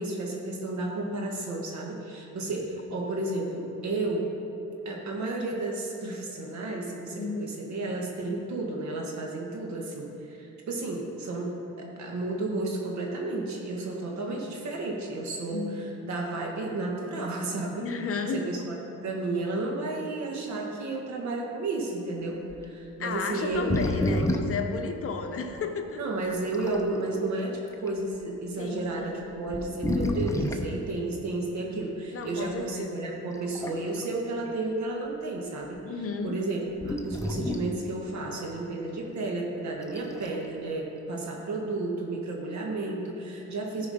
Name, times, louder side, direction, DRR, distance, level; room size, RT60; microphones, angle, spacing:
voice 1, 0.0-4.3 4.9-17.9 18.3-23.8 24.1-24.3 26.0-35.8 36.2-43.9, right 2 dB, 65° right, 0 dB, 1.7 m, -32 dB
voice 2, 7.1-7.4 15.5-15.8 17.8-18.5 23.0-26.0 28.6-29.2 32.1-32.9 35.8-36.4, left 4 dB, 50° left, 5 dB, 0.9 m, -33 dB
sound 1, 22.5-22.6 23.5-24.7 25.5-25.6 26.3-26.9 27.7-27.9 28.8-28.9 29.5-30.7 32.4-32.5 33.3-34.0 34.4-34.5 36.8-37.8 39.8-40.4, left 1 dB, 10° left, 0.8 m, -30 dB
13.0 x 4.8 x 5.1 m, 2.9 s
cardioid pair, 90°, 30 cm